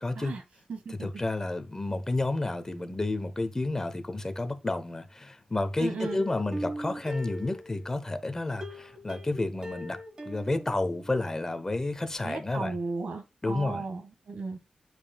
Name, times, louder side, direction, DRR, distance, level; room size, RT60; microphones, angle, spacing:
voice 1, 0.0-0.3 0.9-10.0 10.2-12.8 13.4-13.9, left 2 dB, 25° left, 1.0 m, -31 dB
voice 2, 0.7-1.1 5.8-6.2 12.2-14.6, right 4 dB, 85° right, 1.7 m, -35 dB
Plucked string instrument, 6.0-8.0 8.6-11.4 11.7-11.8 12.2-12.3, equal, 35° right, 1.3 m, -40 dB
9.3 x 5.5 x 2.3 m
wide cardioid pair, 95°, 2 cm